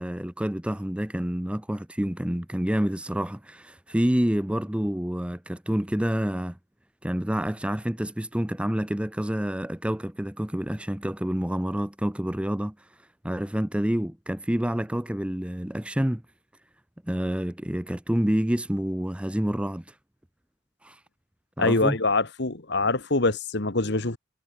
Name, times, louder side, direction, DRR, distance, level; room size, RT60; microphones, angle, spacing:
voice 1, 0.0-6.6 7.0-12.7 13.2-16.2 17.1-19.9 20.8-21.0 21.6-22.0, equal, 5° right, 0.6 m, -28 dB
voice 2, 21.6-24.2, left 3 dB, 55° left, 1.8 m, -24 dB
head